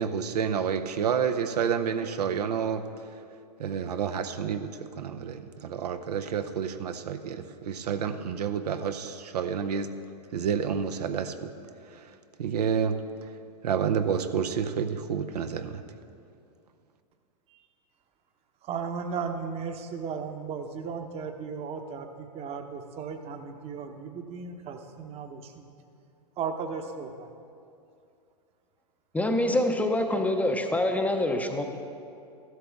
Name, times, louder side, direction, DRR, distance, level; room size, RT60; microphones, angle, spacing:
voice 1, 0.0-2.9 3.6-9.9 10.3-11.5 11.9-13.0 13.6-15.8, right 7 dB, 70° right, 9 dB, 0.7 m, -29 dB
voice 2, 18.7-25.7 26.4-27.3, right 5 dB, 30° right, 6 dB, 1.0 m, -35 dB
voice 3, 29.1-31.8, left 1 dB, 5° left, 4 dB, 0.7 m, -26 dB
14.0 x 12.5 x 3.5 m, 2.5 s
hypercardioid pair, 110°, 21 cm